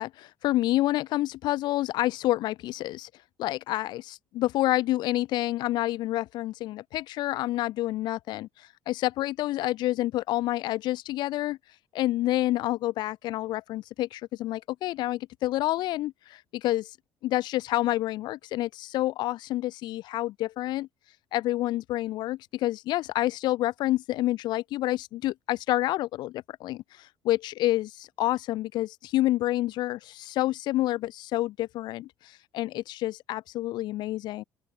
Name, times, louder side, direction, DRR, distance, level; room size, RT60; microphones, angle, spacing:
voice 1, 0.0-3.1 3.4-11.6 11.9-16.9 17.2-20.9 21.3-34.4, left 16 dB, 70° left, 0.5 m, -28 dB
open air
supercardioid pair, 75°, 8 cm